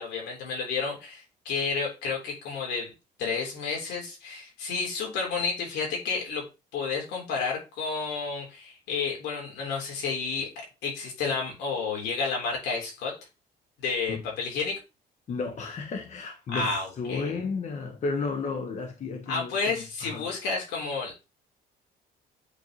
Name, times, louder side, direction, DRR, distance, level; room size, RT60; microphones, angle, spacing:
voice 1, 0.0-2.9 3.2-6.4 6.7-13.1 13.8-14.8 16.5-17.3 19.3-21.1, left 4 dB, 85° left, 3.6 m, -31 dB
voice 2, 15.3-20.3, left 4 dB, 45° left, 1.1 m, -33 dB
8.3 x 4.4 x 3.1 m
cardioid pair, 110°, 17 cm